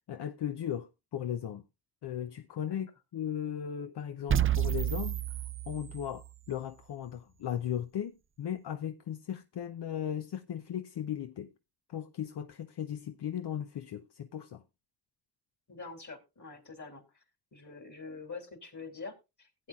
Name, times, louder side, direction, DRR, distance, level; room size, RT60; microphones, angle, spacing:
voice 1, 0.1-1.6 2.0-5.2 5.7-11.5 11.9-14.6, left 9 dB, 80° left, 0.6 m, -37 dB
sound 1, 4.3-6.3, right 11 dB, 35° right, 0.4 m, -30 dB
voice 2, 15.7-17.0 17.5-19.7, left 4 dB, 50° left, 3.0 m, -45 dB
16.0 x 8.7 x 2.3 m
cardioid pair, 50°, 39 cm